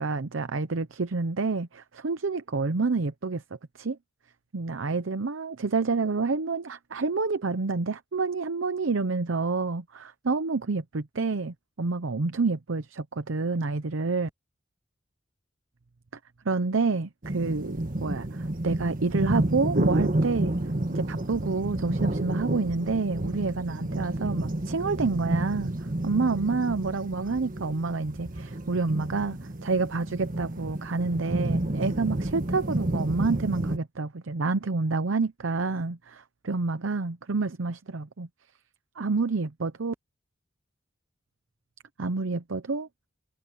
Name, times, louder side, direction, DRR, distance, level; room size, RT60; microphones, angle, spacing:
voice 1, 0.0-3.4 3.7-4.0 4.5-14.3 16.4-20.5 20.9-25.7 26.0-38.3 39.0-39.9 42.0-42.9, right 3 dB, 85° right, 0.7 m, -28 dB
sound 1, 17.2-33.8, right 1 dB, 45° right, 1.6 m, -30 dB
head